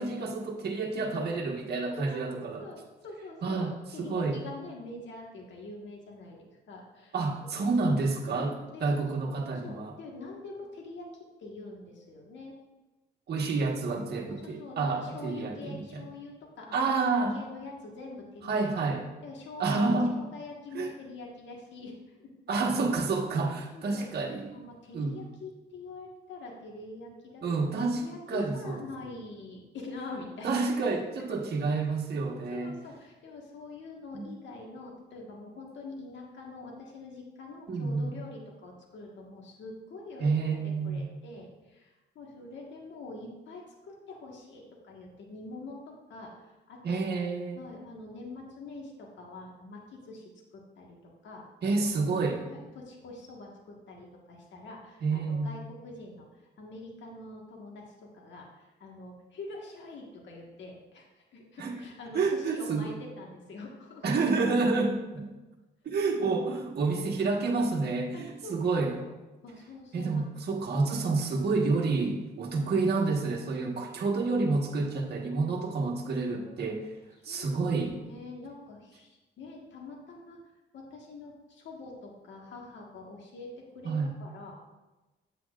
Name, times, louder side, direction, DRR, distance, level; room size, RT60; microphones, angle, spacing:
voice 1, 0.0-2.3 3.4-4.4 7.1-8.5 8.8-9.9 13.3-16.1 16.7-17.3 18.4-19.1 19.6-20.2 20.7-20.9 22.5-24.5 24.9-25.2 27.4-28.0 28.3-28.8 30.4-32.7 34.1-34.3 37.7-38.1 40.2-41.0 46.8-47.6 51.6-52.4 55.0-55.5 61.6-61.8 62.1-62.9 64.0-65.3 65.8-69.0 69.9-76.9 77.2-78.0 83.8-84.1, right 3 dB, 55° right, 0 dB, 1.4 m, -29 dB
voice 2, 1.8-3.7 3.9-7.1 7.5-7.7 8.2-11.1 11.4-12.5 14.3-18.6 19.2-22.6 23.5-24.1 24.5-27.4 27.9-30.5 32.5-40.6 40.8-47.2 47.5-51.4 51.9-52.0 52.4-56.3 56.6-61.1 61.3-64.0 68.1-69.1 69.4-70.2 72.5-72.8 75.0-75.2 76.4-76.6 77.2-77.4 78.0-80.4 80.7-83.9 84.2-84.5, left 3 dB, 65° left, -1 dB, 1.6 m, -45 dB
8.8 x 7.9 x 2.5 m, 1.1 s
cardioid pair, 90°, 20 cm